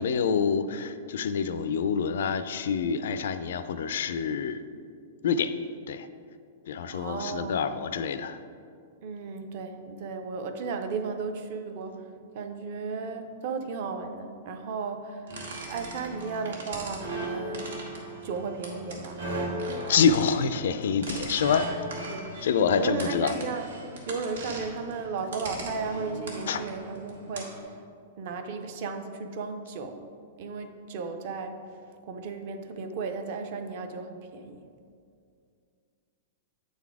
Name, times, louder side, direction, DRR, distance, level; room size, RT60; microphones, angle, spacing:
voice 1, 0.0-4.6 5.2-5.6 5.9-6.1 6.7-8.4 19.9-21.8 22.4-23.3 26.5-26.6, left 6 dB, 60° left, 11 dB, 0.3 m, -26 dB
voice 2, 6.9-7.7 9.0-15.4 15.7-17.8 18.2-19.9 22.1-22.4 22.7-23.7 24.1-27.8 28.2-30.0 30.4-31.6 32.1-34.6, right 4 dB, 40° right, 7 dB, 0.5 m, -35 dB
sound 1, 15.3-27.6, right 1 dB, 85° right, 1.5 m, -38 dB
8.2 x 4.0 x 4.7 m, 2.3 s
supercardioid pair, 180°, 0 cm